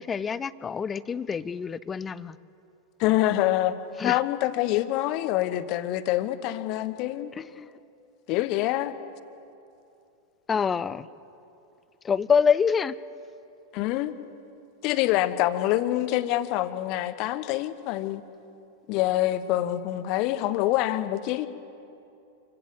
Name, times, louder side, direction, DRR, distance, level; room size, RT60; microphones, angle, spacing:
voice 1, 0.0-2.4 4.0-4.2 7.4-7.7 10.5-11.1 12.0-13.0, left 6 dB, 20° left, 19 dB, 0.6 m, -26 dB
voice 2, 3.0-3.8 4.0-7.3 8.3-8.9 13.7-14.1 14.8-18.2 18.9-21.5, left 14 dB, 40° left, 13 dB, 1.0 m, -26 dB
26.5 x 16.5 x 7.8 m, 2.7 s
figure-of-eight pair, 90°, 0 cm